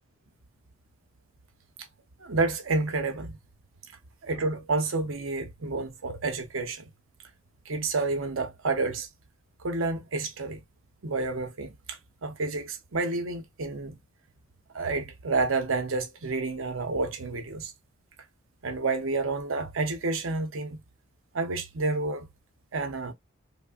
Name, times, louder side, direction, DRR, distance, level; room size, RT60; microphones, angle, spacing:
voice 1, 2.2-3.4 4.2-6.9 7.7-9.1 9.6-10.6 11.0-14.0 14.7-17.7 18.6-20.8 21.3-22.3 22.7-23.1, right 3 dB, 75° right, 0.7 m, -29 dB
3.2 x 2.1 x 2.3 m
head